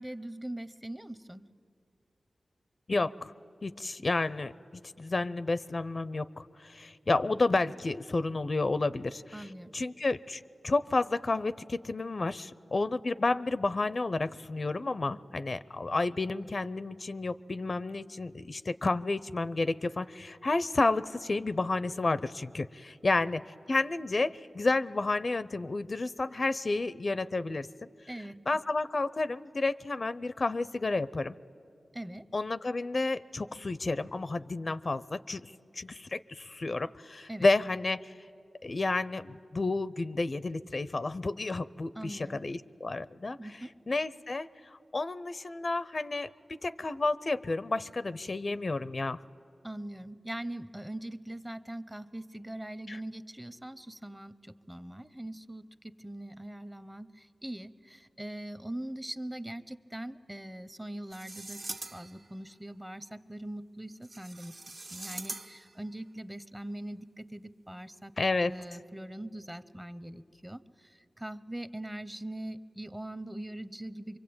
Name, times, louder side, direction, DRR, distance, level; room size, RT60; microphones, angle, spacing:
voice 1, 0.0-1.5 9.3-9.8 28.1-28.4 31.9-32.3 37.3-37.5 42.0-42.4 43.4-43.7 49.6-68.1 68.5-74.2, right 1 dB, 10° right, 14 dB, 0.7 m, -42 dB
voice 2, 2.9-3.3 3.6-9.5 9.7-23.4 23.7-27.7 28.5-31.3 32.3-38.1 38.6-43.4 43.9-49.2 52.9-53.0 68.2-68.5, left 3 dB, 50° left, 16 dB, 0.5 m, -31 dB
sound 1, 61.1-62.3 64.0-65.8, right 2 dB, 60° right, 1.2 m, -43 dB
25.0 x 24.0 x 8.7 m, 2.6 s
cardioid pair, 55°, 0 cm